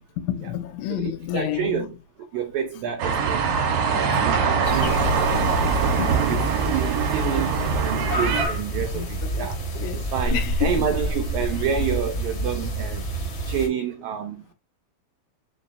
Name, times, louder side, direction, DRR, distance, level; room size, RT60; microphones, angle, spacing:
voice 1, 0.2-1.9 3.9-4.3 5.3-5.5 6.0-6.4 8.9-9.5 9.8-10.1 10.3-10.7, left 12 dB, 85° left, 2.5 m, -30 dB
voice 2, 0.9-2.0 2.3-3.5 3.9-5.0 6.1-9.6 10.1-13.1 13.4-14.5, right 8 dB, 90° right, 1.6 m, -29 dB
sound 1, 3.0-8.5, right 6 dB, 60° right, 2.0 m, -23 dB
sound 2, 4.6-13.7, right 1 dB, 60° left, 1.3 m, -28 dB
5.6 x 2.2 x 4.0 m
omnidirectional pair, 4.1 m